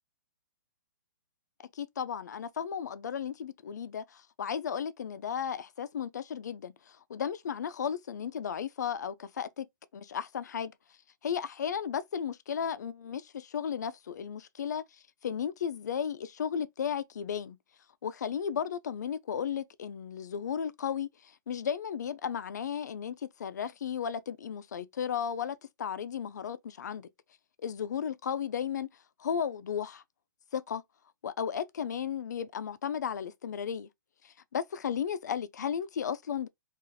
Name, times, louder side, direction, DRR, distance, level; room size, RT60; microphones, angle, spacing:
voice 1, 1.7-9.7 9.9-10.7 11.2-17.6 18.0-27.1 27.6-28.9 29.2-30.0 30.5-30.8 31.2-33.9 34.2-36.5, left 8 dB, 60° left, 0.4 m, -34 dB
2.7 x 2.4 x 3.8 m
hypercardioid pair, 175°, 11 cm